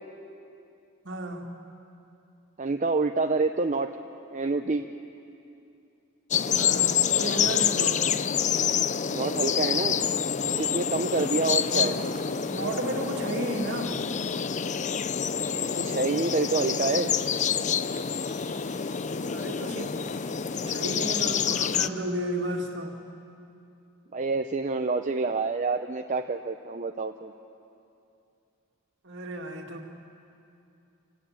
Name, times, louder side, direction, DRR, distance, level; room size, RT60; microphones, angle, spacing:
voice 1, 1.0-1.5 6.6-6.9 7.2-8.2 11.6-12.0 12.5-14.0 19.3-19.9 20.7-22.9 29.0-30.0, right 1 dB, 60° right, 2 dB, 2.4 m, -33 dB
voice 2, 2.6-3.9 4.3-4.9 9.1-10.0 10.4-12.0 15.8-17.1 24.1-27.3, right 3 dB, 35° right, 6 dB, 0.6 m, -27 dB
sound 1, 6.3-21.9, left 7 dB, 35° left, 0.5 m, -27 dB
sound 2, 11.1-21.5, equal, 10° left, 3.7 m, -53 dB
26.5 x 16.0 x 8.8 m, 2.7 s
head